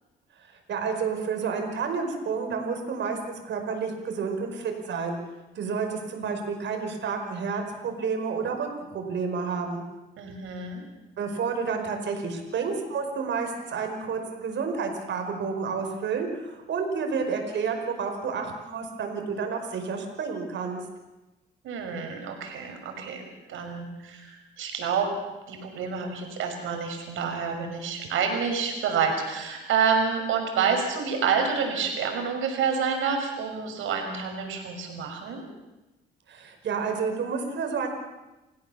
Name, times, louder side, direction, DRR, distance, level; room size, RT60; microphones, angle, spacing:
voice 1, 0.4-3.2 3.4-5.2 5.6-9.8 11.2-20.8 36.3-37.9, right 5 dB, 65° right, 4 dB, 5.4 m, -30 dB
voice 2, 10.2-10.8 21.6-25.1 25.5-35.5, right 6 dB, 85° right, 4 dB, 5.8 m, -28 dB
30.0 x 16.0 x 7.2 m, 1.1 s
cardioid pair, 90°, 20 cm